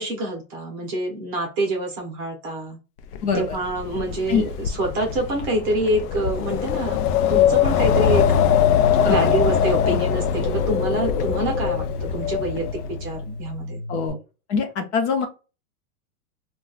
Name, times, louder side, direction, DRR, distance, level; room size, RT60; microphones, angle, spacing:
voice 1, 0.0-2.8 3.3-7.0 7.3-8.3 9.0-12.7 13.0-13.8, right 1 dB, 25° right, 0 dB, 0.6 m, -26 dB
Wind, 3.1-13.2, left 9 dB, 90° left, 0.6 m, -22 dB
voice 2, 3.2-3.6 4.3-4.4 9.0-9.3 9.8-10.0 13.9-14.2 14.5-15.3, left 5 dB, 50° left, 5 dB, 0.7 m, -23 dB
Bass guitar, 7.8-14.1, left 1 dB, 25° left, 0.4 m, -29 dB
2.3 x 2.2 x 3.8 m, 0.31 s
supercardioid pair, 170°, 44 cm